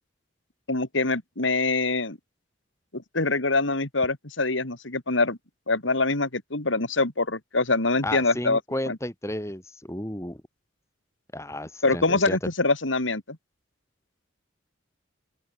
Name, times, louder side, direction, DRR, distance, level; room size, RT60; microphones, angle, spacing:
voice 1, 0.7-2.2 2.9-5.4 5.7-8.6 8.9-9.0 11.8-13.4, left 3 dB, 85° left, 2.9 m, -24 dB
voice 2, 8.0-10.4 11.3-12.4, left 1 dB, 15° left, 2.7 m, -33 dB
open air
head